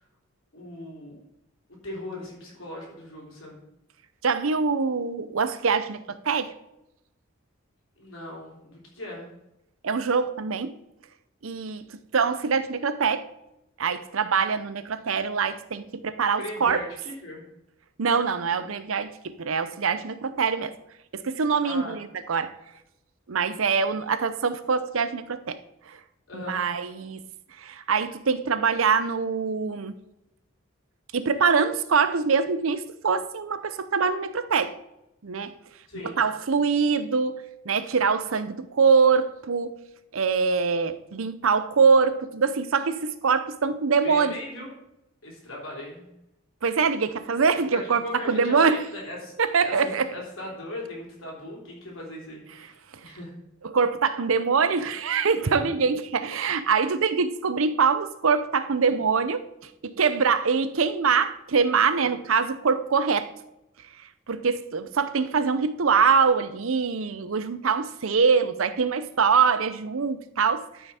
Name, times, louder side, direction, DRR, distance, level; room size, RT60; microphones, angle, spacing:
voice 1, 0.5-1.1 1.8-3.6 8.0-9.3 16.4-17.5 21.6-22.0 26.3-26.6 35.9-36.2 44.0-44.7 45.2-46.1 47.7-49.3 49.6-53.4 55.4-55.7, left 1 dB, 75° left, 3.7 m, -38 dB
voice 2, 4.2-6.5 9.8-10.8 11.4-11.8 12.1-13.3 13.8-16.8 18.0-20.7 21.1-22.5 23.3-25.6 25.9-26.0 26.3-27.2 27.6-30.0 31.1-34.8 35.2-35.5 36.0-39.7 40.1-44.3 46.6-48.9 49.4-50.1 53.0-53.1 53.6-59.4 59.8-63.3 64.3-70.9, right 5 dB, 80° right, 0.6 m, -24 dB
12.5 x 5.7 x 4.3 m
head